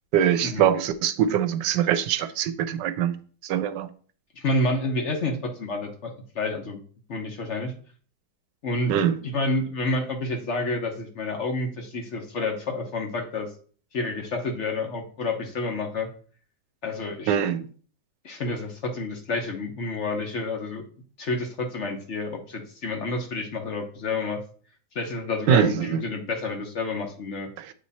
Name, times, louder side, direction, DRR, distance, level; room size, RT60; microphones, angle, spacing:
voice 1, 0.1-3.9 8.9-9.2 17.3-17.7 25.5-26.0 27.6-27.7, right 9 dB, 90° right, 1.3 m, -23 dB
voice 2, 4.4-6.8 7.1-7.7 8.6-8.9 9.2-13.5 13.9-16.1 16.8-17.4 18.2-20.8 21.2-24.4 24.9-27.5, left 2 dB, 50° left, 1.1 m, -29 dB
8.5 x 3.1 x 4.1 m
omnidirectional pair, 1.9 m